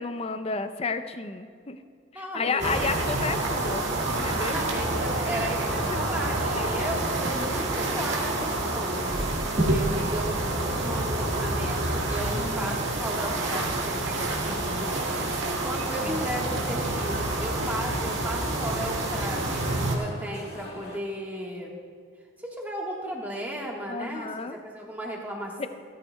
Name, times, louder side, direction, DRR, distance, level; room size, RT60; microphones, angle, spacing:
voice 1, 0.0-1.8 2.1-4.7 5.7-6.0 6.5-7.0 12.3-12.8 16.0-16.2 23.9-24.6 25.6-25.7, left 4 dB, 30° left, 10 dB, 0.4 m, -32 dB
voice 2, 2.1-2.9 4.5-21.8 22.4-25.7, equal, 10° right, -2 dB, 1.3 m, -35 dB
sound 1, 2.6-20.0, right 2 dB, 65° right, 1.8 m, -28 dB
sound 2, 15.8-21.0, left 1 dB, 55° left, 1.8 m, -42 dB
17.0 x 13.0 x 2.2 m, 2.1 s
head